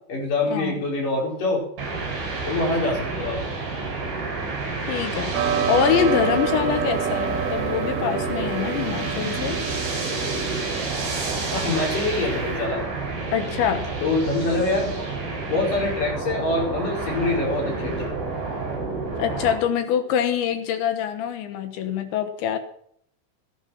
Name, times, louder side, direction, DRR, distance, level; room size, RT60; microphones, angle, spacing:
voice 1, 0.1-1.6 2.5-3.4 11.5-12.8 14.0-15.1 15.5-18.1, left 2 dB, 45° left, -1 dB, 6.4 m, -25 dB
sound 1, 1.8-19.6, right 3 dB, 55° right, 7.3 m, -29 dB
voice 2, 4.9-5.3 5.7-9.6 13.3-13.9 19.2-22.6, left 9 dB, 75° left, 9 dB, 3.4 m, -24 dB
sound 2, 5.3-12.7, right 8 dB, 90° right, 3.7 m, -29 dB
17.0 x 11.0 x 5.9 m, 0.66 s
omnidirectional pair, 5.5 m